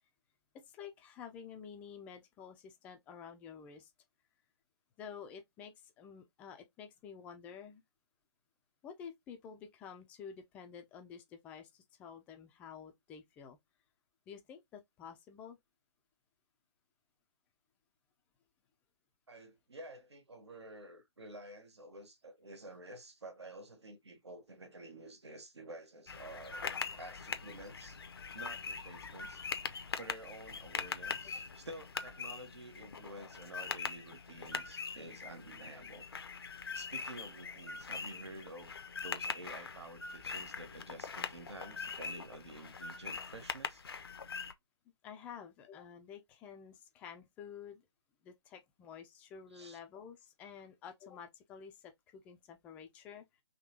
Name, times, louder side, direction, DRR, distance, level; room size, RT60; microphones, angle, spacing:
voice 1, 0.7-3.9 5.0-7.8 8.8-13.6 14.3-15.6 45.0-47.8 48.2-53.2, left 7 dB, 10° left, 0.4 m, -50 dB
voice 2, 19.3-28.0 28.3-29.4 30.0-36.1 36.7-38.7 39.0-43.8 49.5-49.8, right 2 dB, 70° right, 1.1 m, -50 dB
sound 1, 26.1-44.5, left 5 dB, 60° left, 0.6 m, -42 dB
3.8 x 2.9 x 2.7 m
figure-of-eight pair, 140°, 15 cm